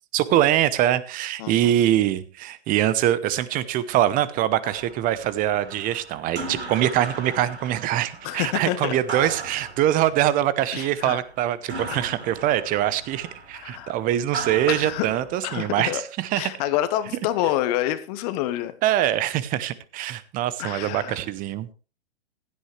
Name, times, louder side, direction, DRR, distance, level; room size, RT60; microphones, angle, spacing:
voice 1, 0.1-16.5 18.8-21.7, right 12 dB, 25° right, 17 dB, 0.9 m, -23 dB
voice 2, 1.4-1.7 8.2-9.0 10.7-11.2 11.9-12.1 13.5-13.9 14.7-15.1 15.4-16.0 16.4-18.7 20.6-21.2, left 13 dB, 40° left, 11 dB, 1.2 m, -27 dB
sound 1, 4.6-16.0, right 3 dB, 85° right, 3.6 m, -38 dB
16.0 x 12.0 x 3.3 m, 0.34 s
hypercardioid pair, 120°, 32 cm